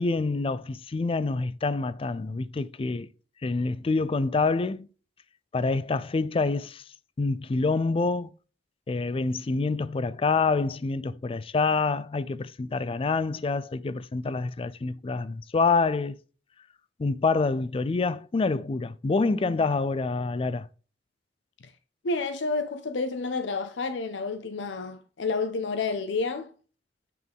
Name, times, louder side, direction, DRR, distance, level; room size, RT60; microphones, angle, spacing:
voice 1, 0.0-3.1 3.4-4.9 5.5-6.8 7.2-8.3 8.9-16.2 17.0-20.7, left 3 dB, 30° left, 0.4 m, -27 dB
voice 2, 22.0-26.5, left 3 dB, 80° left, 0.6 m, -30 dB
8.3 x 3.8 x 3.5 m
head